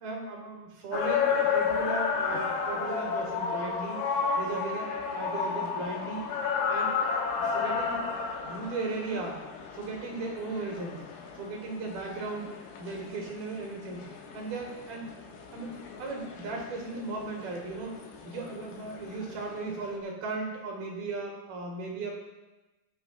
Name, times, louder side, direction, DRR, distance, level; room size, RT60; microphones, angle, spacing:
voice 1, 0.0-4.0 4.4-6.2 6.7-6.9 7.4-8.0 8.4-9.4 9.7-11.0 11.3-12.5 12.8-15.1 15.5-22.1, right 3 dB, 65° right, 0 dB, 3.0 m, -36 dB
sound 1, 0.9-20.0, left 5 dB, 85° left, 3.8 m, -33 dB
17.0 x 10.0 x 2.3 m, 1.1 s
omnidirectional pair, 5.3 m